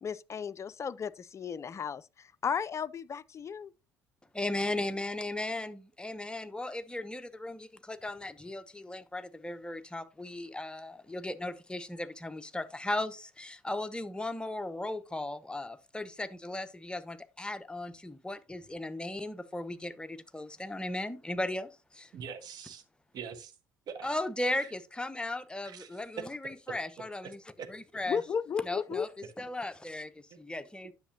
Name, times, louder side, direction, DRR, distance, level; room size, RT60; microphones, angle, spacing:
voice 1, 0.0-3.7 28.1-29.1, left 7 dB, 35° left, 0.4 m, -34 dB
voice 2, 4.3-22.1 24.0-27.4 27.7-28.2 28.6-29.1 29.4-30.9, left 1 dB, 10° left, 0.9 m, -37 dB
voice 3, 22.1-22.8 23.1-23.5 23.9-24.1 24.5-24.7 25.6-25.9 27.6-27.7, right 7 dB, 50° right, 1.3 m, -42 dB
10.0 x 6.7 x 2.8 m
figure-of-eight pair, 50°, 9 cm